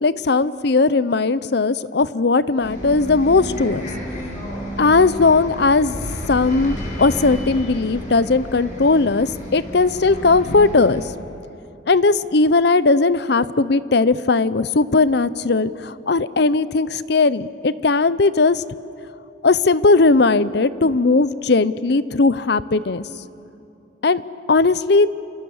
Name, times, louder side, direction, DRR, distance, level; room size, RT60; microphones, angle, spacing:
voice 1, 0.0-3.9 4.8-6.0 6.3-11.0 11.9-18.6 19.4-23.0 24.0-24.2 24.5-25.1, left 3 dB, 60° left, 16 dB, 0.7 m, -18 dB
Bus, 2.6-11.0, equal, 40° left, 7.5 m, -31 dB
28.5 x 26.5 x 7.2 m, 2.8 s
head